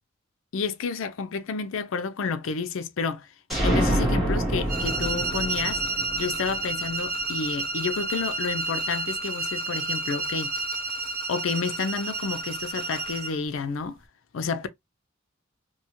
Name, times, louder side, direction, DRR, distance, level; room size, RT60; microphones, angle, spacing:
voice 1, 0.5-3.3 3.6-5.8 6.2-10.6 11.3-14.0 14.3-14.7, left 5 dB, 85° left, 0.5 m, -30 dB
sound 1, 3.5-7.2, right 1 dB, ahead, 1.4 m, -27 dB
sound 2, 4.7-13.4, right 3 dB, 45° right, 0.7 m, -30 dB
2.7 x 2.3 x 2.9 m
head